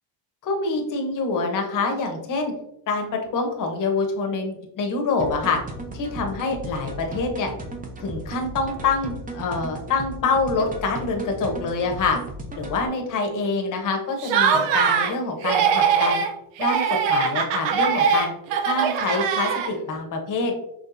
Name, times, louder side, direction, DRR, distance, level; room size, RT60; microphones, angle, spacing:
voice 1, 0.4-2.5 2.9-5.6 5.9-7.5 8.0-12.2 12.6-16.2 16.6-18.3 18.6-20.5, left 3 dB, 45° left, 2 dB, 1.1 m, -26 dB
sound 1, 5.2-12.9, right 1 dB, 20° right, 0.7 m, -36 dB
Laughter, 14.2-15.1 15.4-16.3 16.6-19.9, right 6 dB, 70° right, 0.7 m, -21 dB
5.8 x 3.3 x 2.6 m, 0.79 s
cardioid pair, 125°, 46 cm